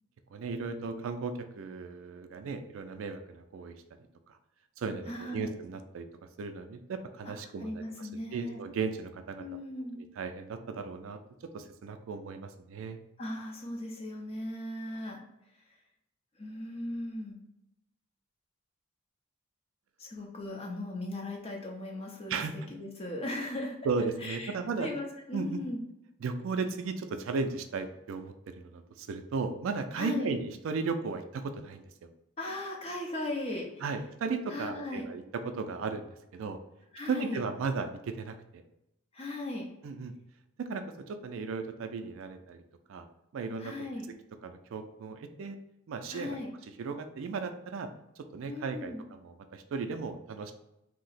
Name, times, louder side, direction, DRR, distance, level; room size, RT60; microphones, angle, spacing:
voice 1, 0.3-3.8 4.3-4.4 4.8-6.1 6.4-9.4 10.2-11.2 11.5-13.0 22.3-22.5 23.8-24.9 25.3-25.6 26.2-32.1 33.8-36.6 37.1-38.6 39.8-40.1 40.6-42.6 42.9-43.1 43.3-43.7 44.4-45.6 45.9-46.4 46.8-47.9 48.2-50.5, right 4 dB, 65° right, 8 dB, 0.3 m, -35 dB
voice 2, 5.1-5.5 7.6-8.6 9.4-10.0 13.2-15.2 16.4-17.4 20.0-22.4 22.7-23.8 24.2-25.8 30.0-30.3 32.4-33.8 34.5-35.0 36.9-37.4 39.1-39.7 43.6-44.1 46.1-46.5 48.5-49.0, left 1 dB, 30° left, 0 dB, 0.5 m, -37 dB
2.7 x 2.0 x 4.0 m, 0.85 s
head